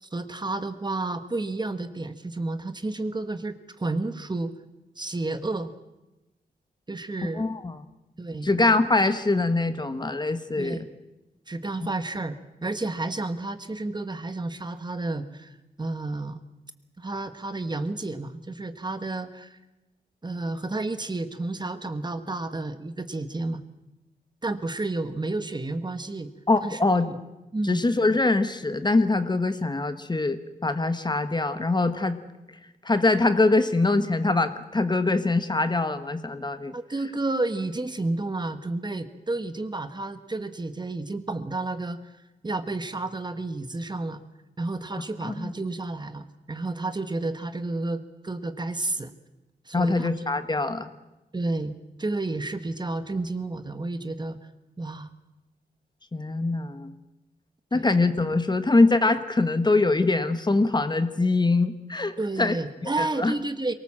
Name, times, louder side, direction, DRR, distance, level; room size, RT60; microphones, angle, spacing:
voice 1, 0.0-4.5 5.0-5.7 6.9-7.5 8.2-8.5 10.6-10.9 11.5-16.4 17.0-19.6 20.2-23.6 24.4-26.3 26.6-27.2 27.5-27.8 36.7-42.1 42.4-44.2 44.6-49.1 49.6-50.1 51.3-54.4 54.8-55.1 57.7-57.9 62.2-63.7, right 2 dB, 25° right, 10 dB, 1.3 m, -31 dB
voice 2, 7.3-7.8 8.4-10.9 26.5-27.1 27.6-32.2 32.8-36.7 45.2-45.5 49.7-50.9 56.1-56.9 57.7-62.6 62.8-63.3, left 3 dB, 25° left, 10 dB, 1.2 m, -23 dB
23.5 x 18.5 x 7.5 m, 1.0 s
wide cardioid pair, 105°, 17 cm